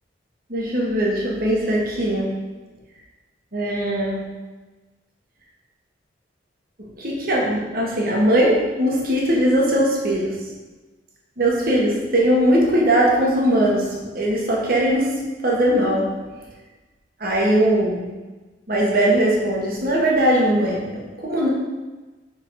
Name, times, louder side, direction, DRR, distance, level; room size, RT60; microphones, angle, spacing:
voice 1, 0.5-2.3 3.5-4.3 7.0-10.4 11.4-13.9 14.1-15.1 15.4-16.1 17.2-18.1 18.7-21.5, right 1 dB, 50° right, -3 dB, 1.6 m, -20 dB
5.9 x 5.8 x 4.8 m, 1.2 s
head